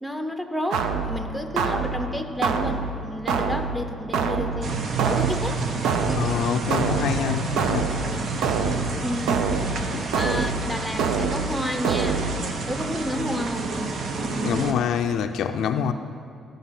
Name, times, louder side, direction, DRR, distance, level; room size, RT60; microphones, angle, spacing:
voice 1, 0.0-5.6 9.0-9.5 10.2-12.3 12.7-13.8, left 1 dB, ahead, 6 dB, 0.7 m, -31 dB
sound 1, 0.7-12.7, right 5 dB, 90° right, 0.6 m, -27 dB
sound 2, 4.6-14.7, right 4 dB, 60° right, 0.8 m, -29 dB
sound 3, 6.0-14.9, right 2 dB, 40° right, 1.2 m, -46 dB
voice 2, 6.1-7.9 9.9-10.1 14.4-15.9, left 8 dB, 75° left, 7 dB, 0.4 m, -26 dB
12.5 x 5.3 x 5.8 m, 2.3 s
cardioid pair, 90°, 0 cm